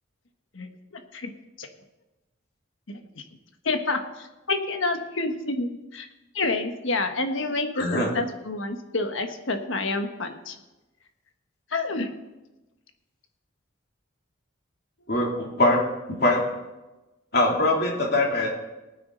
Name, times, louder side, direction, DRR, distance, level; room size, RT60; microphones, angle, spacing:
voice 1, 0.5-1.3 1.6-1.7 2.9-3.0 3.6-6.1 6.3-10.6 11.7-12.1, left 3 dB, 75° left, 6 dB, 1.3 m, -28 dB
voice 2, 7.8-8.1 15.1-16.6 17.3-18.5, left 2 dB, 55° left, -1 dB, 2.9 m, -23 dB
18.5 x 9.5 x 3.9 m, 1.1 s
head